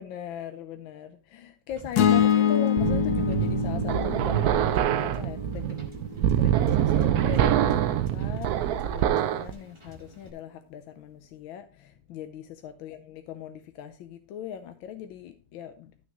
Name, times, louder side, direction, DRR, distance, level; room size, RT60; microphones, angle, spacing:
voice 1, 0.0-5.7 6.3-15.9, left 9 dB, 85° left, 1.5 m, -40 dB
Wind / Boat Water vehicle, 1.7-10.3, left 1 dB, 15° right, 1.7 m, -48 dB
sound 1, 2.0-6.2, left 9 dB, 60° left, 1.1 m, -25 dB
sound 2, 2.8-9.5, right 10 dB, 70° right, 0.9 m, -25 dB
13.5 x 6.4 x 3.0 m
omnidirectional pair, 2.1 m